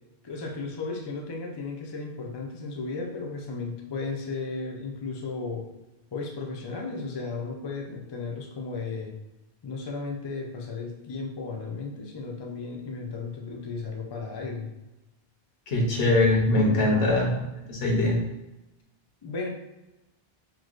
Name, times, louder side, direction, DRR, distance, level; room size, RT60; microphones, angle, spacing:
voice 1, 0.2-5.7 6.1-9.2 9.6-14.7 16.5-17.2 19.2-19.5, left 4 dB, 40° left, 0 dB, 0.4 m, -34 dB
voice 2, 15.7-17.4 17.7-18.2, left 2 dB, 75° left, -1 dB, 1.0 m, -22 dB
4.5 x 2.1 x 2.4 m, 0.97 s
omnidirectional pair, 1.0 m